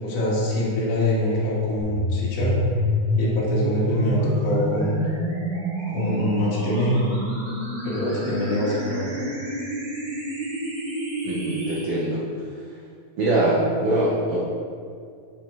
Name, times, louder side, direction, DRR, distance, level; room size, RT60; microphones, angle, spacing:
voice 1, 0.0-2.6 3.2-5.0 5.9-7.0 7.8-9.2, left 1 dB, 60° left, -6 dB, 2.0 m, -24 dB
sound 1, 1.8-11.8, equal, 70° right, 2.4 m, -28 dB
voice 2, 11.2-12.2 13.2-14.4, right 1 dB, 85° right, -6 dB, 1.2 m, -23 dB
7.4 x 3.6 x 4.5 m, 2.3 s
omnidirectional pair, 3.6 m